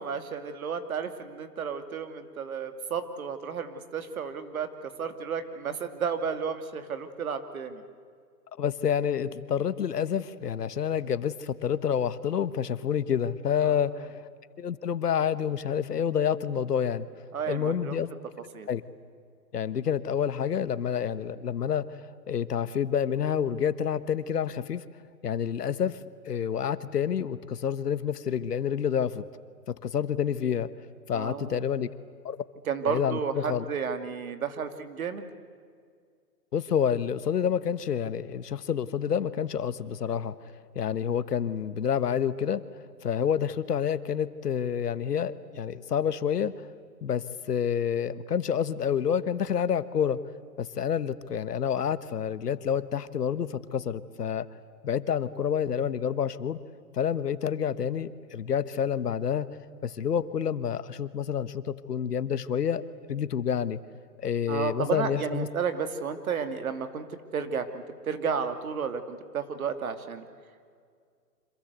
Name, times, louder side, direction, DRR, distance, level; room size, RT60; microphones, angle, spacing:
voice 1, 0.0-7.8 13.6-13.9 17.3-18.0 18.5-18.7 31.1-31.6 32.6-35.3 64.5-70.2, right 6 dB, 60° right, 8 dB, 2.7 m, -32 dB
voice 2, 8.6-14.1 14.6-17.1 17.5-18.1 18.7-18.8 19.5-21.9 22.3-24.8 25.2-26.0 26.2-29.2 29.7-30.7 31.1-31.9 32.2-32.4 32.9-33.6 36.5-40.3 40.7-42.6 43.0-46.5 47.0-50.2 50.6-54.5 54.8-56.6 56.9-59.5 59.8-62.8 63.1-63.8 64.2-65.5, left 8 dB, 70° left, 14 dB, 1.4 m, -28 dB
27.5 x 26.0 x 8.2 m, 2.1 s
hypercardioid pair, 155°, 48 cm